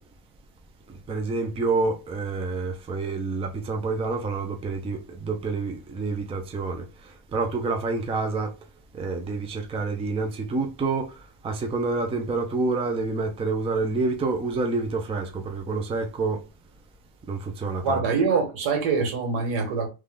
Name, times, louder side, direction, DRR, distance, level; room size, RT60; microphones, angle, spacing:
voice 1, 1.1-6.8 7.3-8.5 8.9-11.2 11.4-16.4 17.3-18.0, right 3 dB, 10° right, 0.5 m, -28 dB
voice 2, 17.8-19.9, right 5 dB, 70° right, 2.1 m, -24 dB
3.5 x 3.2 x 3.8 m
cardioid pair, 140°, 48 cm